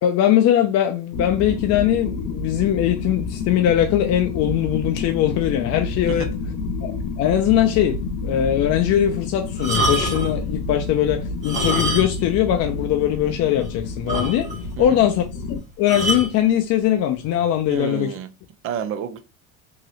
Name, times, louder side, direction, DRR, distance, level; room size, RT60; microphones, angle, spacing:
voice 1, 0.0-6.3 6.8-6.9 7.2-14.5 14.8-15.2 15.8-18.1, left 11 dB, 45° left, 0.4 m, -20 dB
sound 1, 1.1-15.6, left 4 dB, 90° left, 0.8 m, -29 dB
sound 2, 9.5-10.4 11.3-12.3 12.6-12.7 13.3-13.4 13.6-13.7 14.1-14.7 15.9-16.3 17.2-17.4, right 1 dB, 20° right, 1.5 m, -25 dB
voice 2, 17.7-18.3 18.6-19.2, right 8 dB, 35° right, 0.5 m, -30 dB
3.0 x 2.8 x 2.7 m
supercardioid pair, 130°, 39 cm